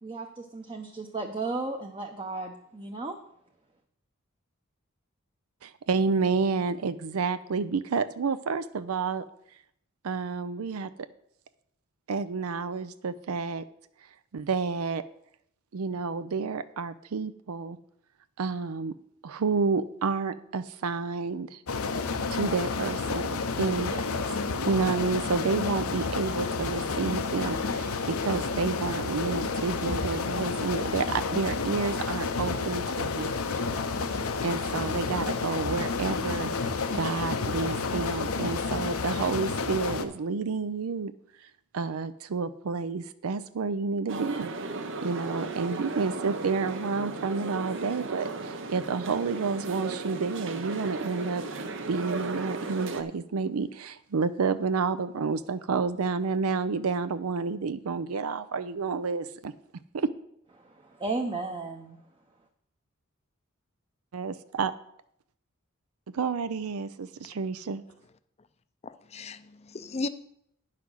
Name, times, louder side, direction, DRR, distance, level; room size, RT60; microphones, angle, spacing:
voice 1, 0.0-3.2 60.6-62.0, right 3 dB, 25° right, 0.7 m, -34 dB
voice 2, 5.6-9.2 10.0-10.9 12.1-13.6 14.3-15.0 15.7-17.8 18.4-18.9 19.2-21.6 22.3-23.3 23.6-24.0 24.6-33.7 34.1-41.1 41.4-44.5 45.0-51.4 51.9-59.5 59.9-60.1 64.1-64.7 66.1-67.8, right 4 dB, 90° right, 0.5 m, -30 dB
sound 1, 21.7-40.1, left 4 dB, 85° left, 0.8 m, -30 dB
sound 2, 44.1-53.0, right 3 dB, 60° right, 0.8 m, -35 dB
voice 3, 68.8-70.1, left 3 dB, 30° left, 0.5 m, -35 dB
9.7 x 5.8 x 6.2 m
head